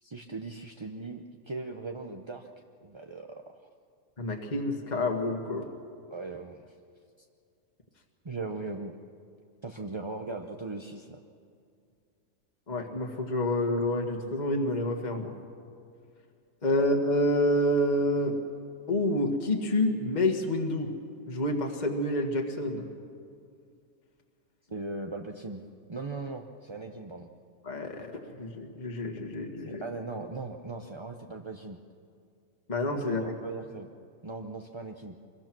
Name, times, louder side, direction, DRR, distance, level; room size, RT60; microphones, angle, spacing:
voice 1, 0.0-2.5 2.8-3.3 6.1-6.7 8.2-8.9 9.6-11.2 16.7-16.9 24.7-25.6 25.9-27.3 29.6-31.8 33.0-33.9 34.2-35.2, right 3 dB, 25° right, 3 dB, 0.6 m, -39 dB
voice 2, 4.2-5.7 12.7-15.4 16.6-18.4 18.9-20.9 21.3-22.9 27.6-29.8 32.7-33.2, left 1 dB, 30° left, 2 dB, 1.8 m, -28 dB
26.0 x 22.0 x 6.1 m, 2.3 s
omnidirectional pair, 1.6 m